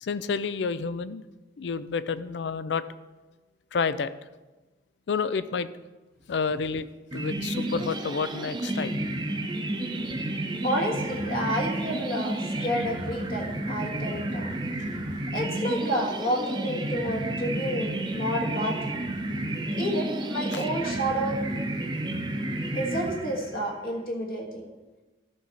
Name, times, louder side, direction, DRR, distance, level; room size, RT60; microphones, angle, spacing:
voice 1, 0.0-1.2 1.6-2.8 3.7-4.1 5.1-5.7 6.3-6.9 7.1-8.9 20.5-20.6, left 5 dB, 90° left, 15 dB, 0.4 m, -29 dB
sound 1, 7.1-23.7, right 1 dB, 25° right, 0.8 m, -31 dB
voice 2, 10.6-14.5 15.3-19.0 19.8-21.4 22.7-24.6, equal, 55° left, 0 dB, 1.5 m, -30 dB
13.0 x 5.6 x 4.3 m, 1.2 s
head